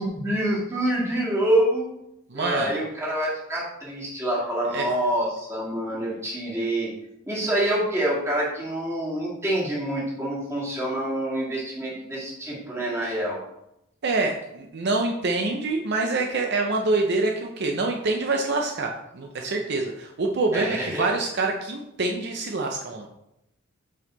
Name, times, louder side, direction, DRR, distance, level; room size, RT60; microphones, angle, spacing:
voice 1, 0.0-1.9 2.3-6.9 7.3-13.4 20.5-21.1, right 1 dB, 15° right, -6 dB, 2.0 m, -26 dB
voice 2, 2.3-2.7 4.7-4.9 14.0-23.1, right 3 dB, 55° right, 2 dB, 0.6 m, -26 dB
5.5 x 5.5 x 3.9 m, 0.84 s
head